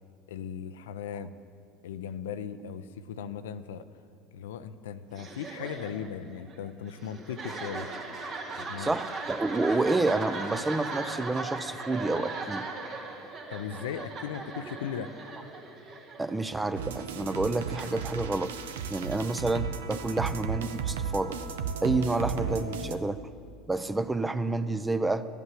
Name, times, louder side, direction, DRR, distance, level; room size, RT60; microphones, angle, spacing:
voice 1, 0.3-1.3 1.8-3.8 4.3-7.9 8.6-8.9 13.5-15.1, left 8 dB, 80° left, 11 dB, 0.5 m, -37 dB
sound 1, 5.1-16.8, right 3 dB, 45° right, 1.9 m, -38 dB
voice 2, 8.8-12.7 16.2-18.5 18.9-21.4 21.8-23.2 23.7-25.3, right 2 dB, 15° right, 13 dB, 0.6 m, -29 dB
sound 2, 16.8-23.0, right 6 dB, 85° right, 0.6 m, -34 dB
11.0 x 8.3 x 8.6 m, 2.3 s
hypercardioid pair, 85°, 0 cm